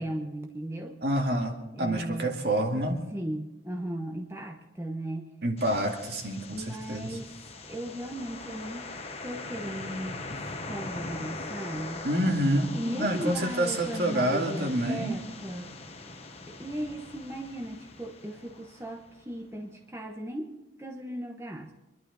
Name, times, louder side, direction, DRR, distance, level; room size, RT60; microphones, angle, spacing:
voice 1, 0.0-1.0 1.7-2.3 3.1-5.3 6.5-7.3 7.7-8.9 9.2-12.1 12.7-15.7 16.5-20.5 20.8-21.7, right 1 dB, 15° right, 1 dB, 1.1 m, -37 dB
voice 2, 1.0-3.0 5.4-7.2 12.0-15.2, right 1 dB, 60° right, 2 dB, 2.2 m, -28 dB
sound 1, 5.6-19.5, left 3 dB, 35° left, 1.2 m, -42 dB
25.5 x 11.5 x 4.1 m, 0.97 s
head